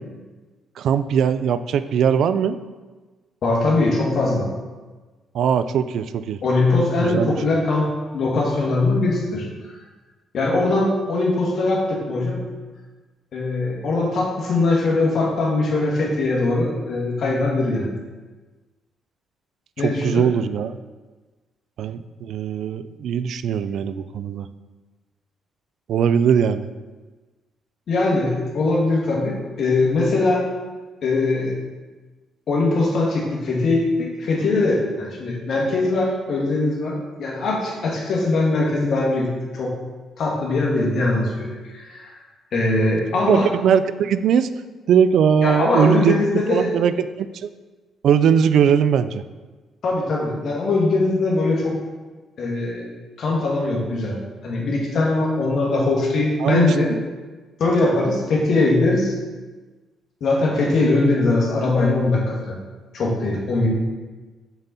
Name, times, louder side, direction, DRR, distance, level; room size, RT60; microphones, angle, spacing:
voice 1, 0.8-2.6 5.3-6.4 7.0-7.4 19.8-20.8 21.8-24.5 25.9-26.7 43.3-44.5 44.9-46.2 46.5-47.5 48.0-49.2 56.4-56.7, right 7 dB, 70° right, 13 dB, 0.3 m, -20 dB
voice 2, 3.4-4.5 6.4-7.8 8.1-9.5 10.3-12.4 13.3-17.9 19.8-20.3 27.9-30.4 31.0-31.5 32.5-39.8 40.2-42.1 42.5-43.5 45.4-46.7 49.8-51.7 52.4-52.9 53.2-54.2 54.4-56.9 57.6-59.1 60.2-62.6 62.9-63.7, left 2 dB, 60° left, -2 dB, 1.6 m, -21 dB
7.0 x 4.0 x 4.1 m, 1.3 s
cardioid pair, 90°, 0 cm